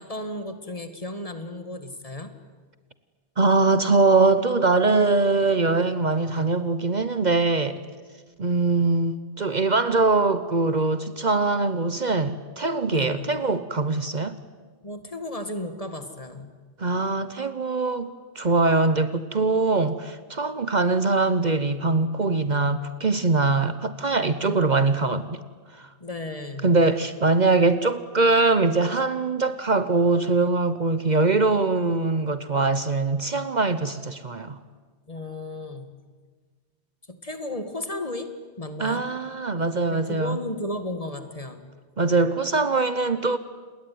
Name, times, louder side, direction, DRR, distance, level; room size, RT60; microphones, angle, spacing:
voice 1, 0.0-2.3 12.9-13.4 14.8-16.5 24.4-24.8 26.0-26.8 35.1-35.9 37.1-38.3 38.6-39.1 39.9-41.7, left 1 dB, 35° left, 8 dB, 2.1 m, -34 dB
voice 2, 3.4-7.8 8.4-14.4 16.8-25.4 25.7-25.9 26.6-34.6 38.8-40.4 42.0-43.4, right 3 dB, 45° right, 13 dB, 1.1 m, -22 dB
28.5 x 21.0 x 9.5 m, 1.5 s
omnidirectional pair, 1.1 m